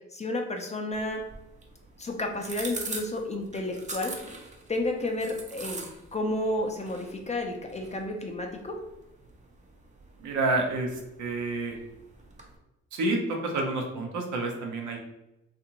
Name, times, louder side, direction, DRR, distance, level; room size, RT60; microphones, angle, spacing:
voice 1, 0.1-1.2 2.0-4.1 4.7-5.8 6.1-8.8, left 1 dB, 25° left, 3 dB, 0.4 m, -31 dB
sound 1, 0.9-12.6, right 3 dB, 25° right, 0.5 m, -44 dB
voice 2, 10.2-11.8 12.9-15.0, right 2 dB, 75° right, 1 dB, 0.7 m, -29 dB
2.6 x 2.5 x 2.8 m, 0.92 s
cardioid pair, 90°, 30 cm